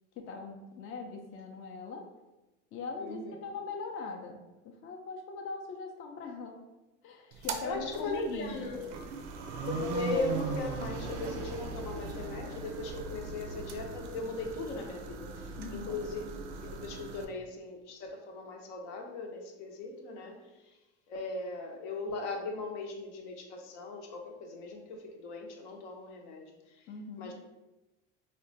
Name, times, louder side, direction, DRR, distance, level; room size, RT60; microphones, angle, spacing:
voice 1, 0.2-2.1 2.7-6.6 7.0-8.7 15.6-16.0 26.9-27.3, left 4 dB, 40° left, 3 dB, 0.4 m, -41 dB
voice 2, 3.0-3.3 7.3-8.8 9.6-16.2 16.6-20.4 20.7-20.8 21.1-26.8 27.2-27.3, left 3 dB, 75° left, 2 dB, 0.7 m, -38 dB
sound 1, 7.3-17.2, right 4 dB, 90° right, 0.5 m, -39 dB
3.6 x 2.1 x 2.7 m, 1.1 s
supercardioid pair, 100°, 35 cm